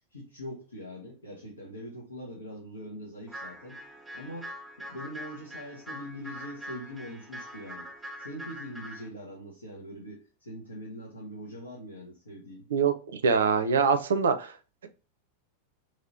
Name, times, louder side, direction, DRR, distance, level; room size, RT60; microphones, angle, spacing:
voice 1, 0.1-3.8 4.1-7.9 8.2-12.7, equal, 75° left, 0.9 m, -42 dB
sound 1, 3.3-9.1, equal, ahead, 0.6 m, -43 dB
voice 2, 12.7-14.5 14.8-14.9, right 5 dB, 65° right, 0.4 m, -24 dB
3.1 x 2.9 x 2.5 m
figure-of-eight pair, 90°, 0 cm